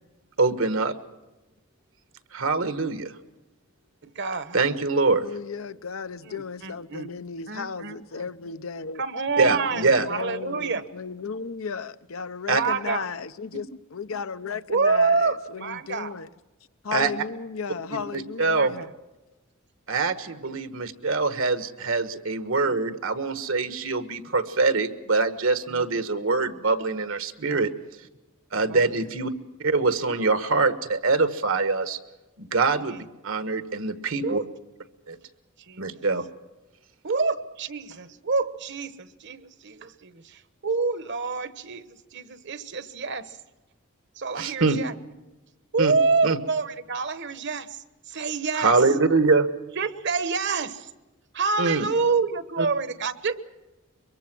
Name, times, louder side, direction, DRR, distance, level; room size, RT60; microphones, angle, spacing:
voice 1, 0.4-0.9 2.3-3.1 4.5-5.3 9.4-10.1 12.5-12.6 16.9-17.1 17.9-18.7 19.9-27.7 28.5-29.3 29.6-32.0 32.4-33.0 33.2-34.4 35.1-35.2 35.8-36.2 44.4-44.8 45.8-45.9 46.2-46.4 48.5-49.5 51.6-51.9 52.6-52.7, right 3 dB, 75° right, 1.5 m, -24 dB
voice 2, 4.0-5.0 6.3-7.1 7.5-8.3 9.0-10.8 12.5-13.1 14.7-16.1 18.5-18.8 25.7-25.8 27.4-27.6 28.7-28.8 30.1-30.3 32.9-33.0 34.2-34.4 35.7-35.9 37.0-43.4 44.2-44.9 45.7-47.8 48.1-48.7 49.8-50.9 51.3-53.3, right 4 dB, 60° right, 1.2 m, -27 dB
voice 3, 5.2-9.0 9.4-16.3 16.8-18.9, left 5 dB, 80° left, 0.8 m, -35 dB
23.5 x 23.0 x 6.1 m
head